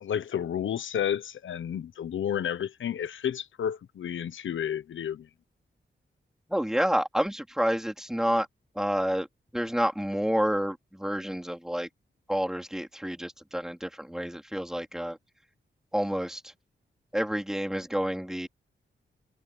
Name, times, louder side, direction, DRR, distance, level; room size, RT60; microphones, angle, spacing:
voice 1, 0.0-5.3, left 9 dB, 85° left, 1.1 m, -31 dB
voice 2, 6.5-8.5 8.8-9.3 9.5-11.9 12.3-15.2 15.9-16.5 17.1-18.5, equal, 5° right, 3.7 m, -29 dB
wide cardioid pair, 95°, 20 cm